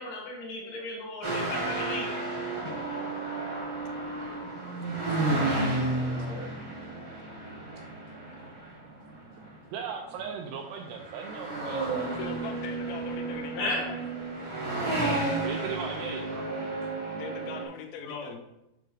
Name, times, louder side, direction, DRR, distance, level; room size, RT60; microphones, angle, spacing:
voice 1, 0.0-2.1 5.4-6.5 13.5-13.9 18.0-18.4, left 2 dB, 65° left, -3 dB, 3.2 m, -36 dB
sound 1, 1.2-9.5 10.2-10.5 10.8-17.6, right 2 dB, 50° right, 1.5 m, -32 dB
voice 2, 9.7-11.9 15.4-16.5, right 6 dB, 85° right, 3 dB, 2.4 m, -38 dB
voice 3, 12.2-14.0 17.1-18.4, left 6 dB, 85° left, 5 dB, 3.0 m, -41 dB
8.7 x 3.4 x 4.8 m, 0.88 s
omnidirectional pair, 5.2 m